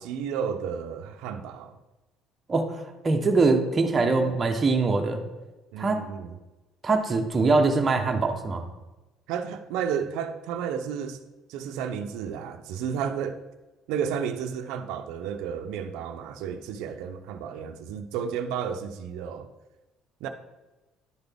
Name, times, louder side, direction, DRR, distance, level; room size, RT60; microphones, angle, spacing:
voice 1, 0.0-1.8 5.7-6.4 9.3-11.2 11.5-13.4 13.9-19.5 20.2-20.3, right 7 dB, 85° right, 0.5 m, -32 dB
voice 2, 3.0-5.2 5.8-6.1 6.8-8.6, right 3 dB, 25° right, 0.8 m, -23 dB
10.5 x 3.9 x 3.5 m
cardioid pair, 140°, 0 cm